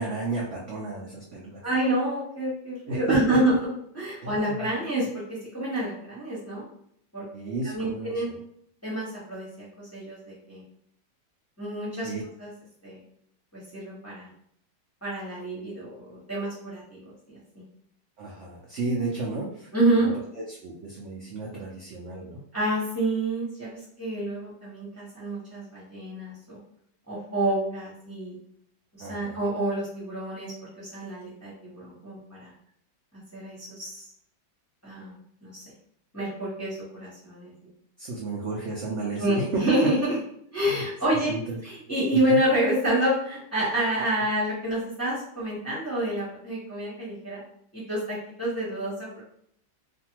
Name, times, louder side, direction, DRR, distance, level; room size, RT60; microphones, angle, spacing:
voice 1, 0.0-1.6 2.9-3.4 4.2-4.4 7.3-8.4 12.0-12.2 18.2-19.7 20.0-20.1 20.5-22.4 29.0-29.4 38.0-39.8 40.7-40.8 41.3-41.6 42.3-42.4, right 3 dB, 75° right, -3 dB, 0.6 m, -32 dB
voice 2, 1.6-3.6 3.9-6.6 7.1-8.3 8.8-10.6 11.6-12.1 12.4-12.5 12.8-13.0 13.5-14.3 15.0-17.0 19.7-20.1 22.5-26.6 27.1-28.4 28.9-30.5 30.8-32.5 33.3-34.0 34.8-35.6 36.1-37.7 39.2-40.2 40.5-41.3 41.6-47.4 47.7-49.2, right 1 dB, 15° left, -8 dB, 0.7 m, -28 dB
2.6 x 2.4 x 2.8 m, 0.69 s
omnidirectional pair, 1.8 m